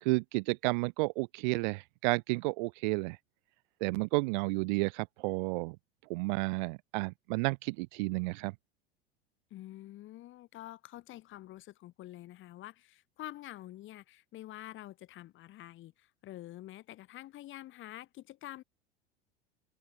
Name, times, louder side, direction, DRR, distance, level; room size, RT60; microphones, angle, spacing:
voice 1, 0.0-3.2 3.8-5.8 6.1-8.5, right 27 dB, 50° right, 0.8 m, -31 dB
voice 2, 9.5-18.6, left 15 dB, 40° left, 4.5 m, -47 dB
figure-of-eight pair, 80°, 31 cm